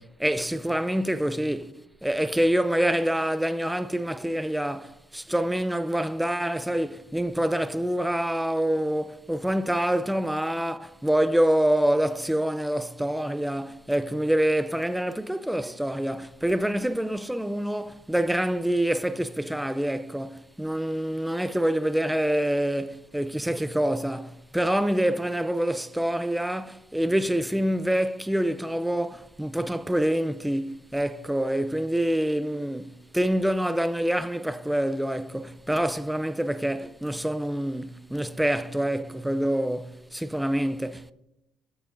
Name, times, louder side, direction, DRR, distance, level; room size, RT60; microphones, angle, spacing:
voice 1, 0.0-1.7 2.0-41.1, right 1 dB, 5° right, 0.4 m, -26 dB
13.5 x 8.8 x 2.6 m
cardioid pair, 100°, 0 cm